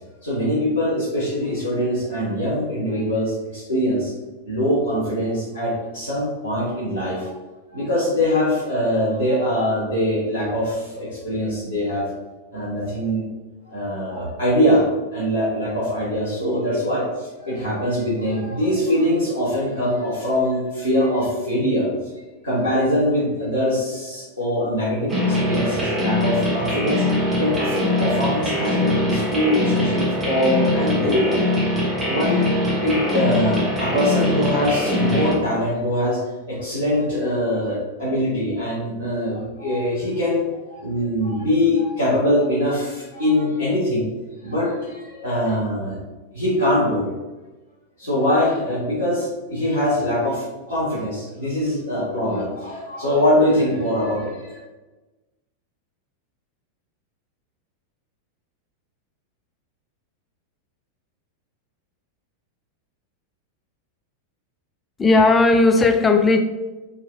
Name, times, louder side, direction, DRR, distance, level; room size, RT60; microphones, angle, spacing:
voice 1, 0.2-4.1 4.4-7.4 7.7-12.1 12.5-13.2 13.7-14.8 15.1-21.9 22.4-27.0 27.4-31.4 32.1-36.2 36.5-44.1 44.4-46.0 46.3-47.1 48.0-54.6, left 1 dB, 90° right, -10 dB, 1.3 m, -22 dB
sound 1, 25.1-35.3, left 1 dB, 15° right, 1.0 m, -22 dB
voice 2, 65.0-66.4, left 3 dB, 15° left, 6 dB, 0.4 m, -15 dB
4.0 x 2.8 x 2.5 m, 1.2 s
figure-of-eight pair, 90°, 0 cm